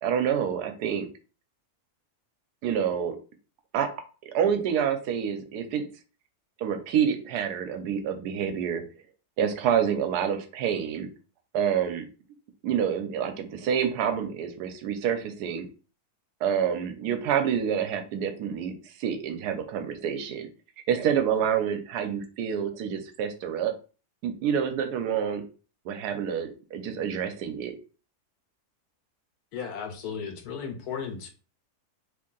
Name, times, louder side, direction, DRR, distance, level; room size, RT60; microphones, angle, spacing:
voice 1, 0.0-1.1 2.6-3.2 3.7-3.9 4.3-5.9 6.6-8.8 9.4-11.1 11.5-12.0 12.6-15.7 16.4-20.5 20.9-23.7 24.2-25.4 25.8-27.7, right 8 dB, 90° right, 7 dB, 1.2 m, -27 dB
voice 2, 29.5-31.3, left 6 dB, 75° left, 5 dB, 1.2 m, -35 dB
3.1 x 2.6 x 3.7 m, 0.36 s
omnidirectional pair, 1.7 m